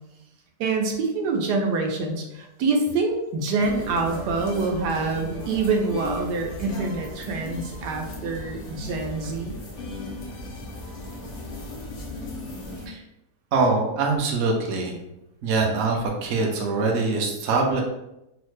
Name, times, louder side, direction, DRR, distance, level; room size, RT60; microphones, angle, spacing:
voice 1, 0.6-9.6, right 3 dB, 85° right, 2 dB, 1.2 m, -26 dB
sound 1, 3.6-12.9, left 2 dB, 60° left, 0.5 m, -36 dB
voice 2, 13.5-15.0 15.4-17.8, right 3 dB, 65° right, 0 dB, 0.8 m, -23 dB
3.1 x 2.1 x 3.1 m, 0.88 s
omnidirectional pair, 1.7 m